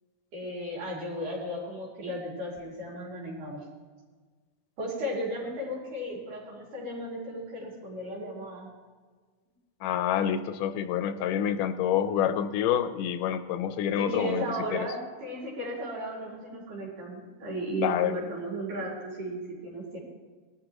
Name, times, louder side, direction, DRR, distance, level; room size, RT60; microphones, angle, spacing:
voice 1, 0.3-3.6 4.8-8.7 14.0-20.0, equal, 80° right, -5 dB, 5.3 m, -35 dB
voice 2, 9.8-14.4 14.7-14.9 17.8-18.1, left 9 dB, 85° left, 10 dB, 2.3 m, -27 dB
20.0 x 13.0 x 3.0 m, 1.5 s
omnidirectional pair, 3.7 m